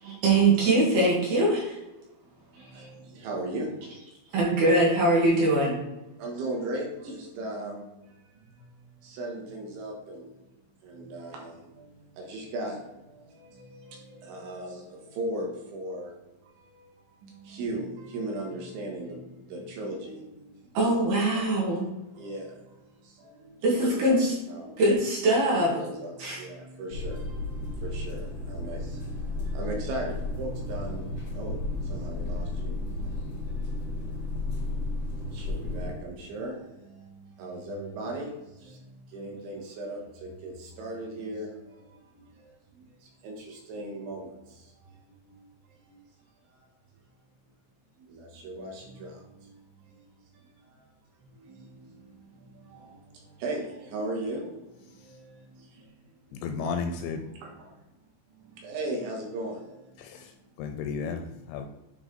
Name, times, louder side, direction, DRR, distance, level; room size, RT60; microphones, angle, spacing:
voice 1, 0.0-1.8 2.6-2.9 4.3-5.8 20.7-21.8 23.6-24.3 24.8-25.7 26.2-26.4, right 2 dB, 65° right, -4 dB, 2.9 m, -22 dB
voice 2, 2.3-4.0 6.2-8.7 9.0-10.4 10.8-16.1 16.4-20.8 21.3-21.4 22.2-24.0 24.5-24.8 25.7-34.9 35.2-46.0 46.5-46.6 48.0-50.1 50.3-50.9 51.3-55.9 56.3-56.4 57.4-57.8 58.4-60.2, right 1 dB, 80° right, 0 dB, 3.3 m, -39 dB
sound 1, 26.9-35.9, left 2 dB, 50° left, 1.3 m, -33 dB
voice 3, 56.3-57.3 60.0-61.7, left 5 dB, 85° left, 6 dB, 2.7 m, -34 dB
9.3 x 3.2 x 3.8 m, 0.96 s
omnidirectional pair, 5.5 m